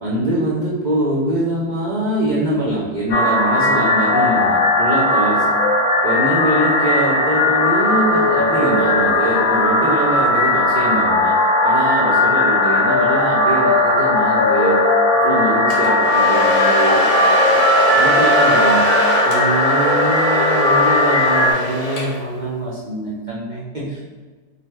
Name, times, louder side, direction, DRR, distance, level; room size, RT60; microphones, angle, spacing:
voice 1, 0.0-5.6 6.0-11.4 11.6-14.8 15.2-17.6 17.9-18.9 19.2-24.0, right 1 dB, 65° right, -6 dB, 0.4 m, -23 dB
sound 1, 3.1-21.5, left 1 dB, 75° left, 1.1 m, -17 dB
Domestic sounds home sounds, 15.7-22.4, left 1 dB, 45° left, 0.5 m, -23 dB
3.9 x 2.0 x 4.4 m, 1.4 s
omnidirectional pair, 1.6 m